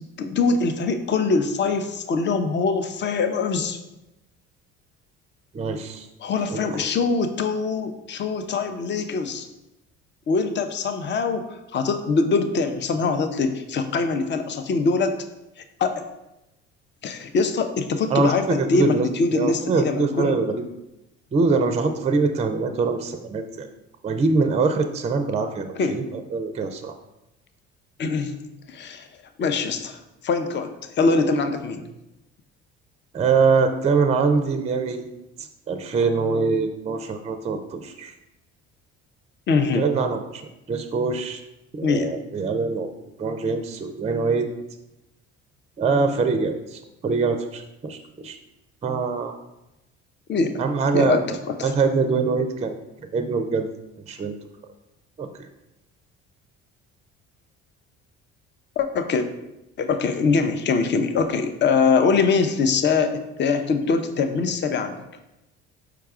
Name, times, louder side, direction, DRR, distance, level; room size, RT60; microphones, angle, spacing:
voice 1, 0.2-3.8 6.2-9.5 10.3-15.2 15.8-16.0 17.0-20.4 25.7-26.0 28.0-28.3 28.7-29.1 29.4-30.7 31.0-31.8 39.5-39.9 41.8-42.1 50.3-50.6 50.9-51.7 58.8-59.3 59.8-65.0, left 4 dB, 35° left, 8 dB, 0.5 m, -23 dB
voice 2, 5.5-6.1 6.5-6.9 18.1-18.3 18.6-19.1 19.3-20.6 21.3-23.7 24.0-26.9 33.1-35.1 35.7-38.1 39.7-41.4 41.7-42.9 43.2-44.5 45.8-48.4 48.8-49.4 50.6-51.2 51.6-52.8 53.1-53.7 54.1-54.3 55.2-55.3, right 4 dB, 20° right, 7 dB, 0.4 m, -23 dB
4.7 x 2.3 x 4.8 m, 0.95 s
supercardioid pair, 70°, 30 cm